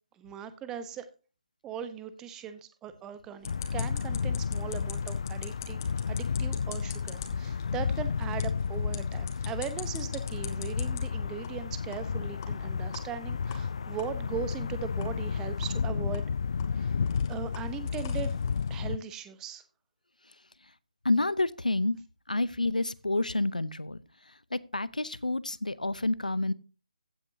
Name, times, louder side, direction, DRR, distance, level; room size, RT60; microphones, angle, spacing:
voice 1, 0.2-1.1 1.6-5.8 6.1-16.3 16.7-16.9 17.3-18.4 18.7-19.6, right 8 dB, 10° right, 12 dB, 0.9 m, -39 dB
sound 1, 3.4-19.0, left 6 dB, 50° left, 0.4 m, -32 dB
sound 2, 3.4-11.0 11.4-11.5 11.9-12.0 12.4-12.5 12.9-13.0 13.5-13.6 14.0-14.1 14.5-14.6 15.0-15.1 15.6-15.7 16.1-18.8, left 8 dB, 25° left, 2.0 m, -46 dB
voice 2, 21.0-22.0 22.3-24.0 24.5-26.5, left 2 dB, 80° left, 19 dB, 0.7 m, -29 dB
15.5 x 8.9 x 2.8 m, 0.34 s
figure-of-eight pair, 145°, 4 cm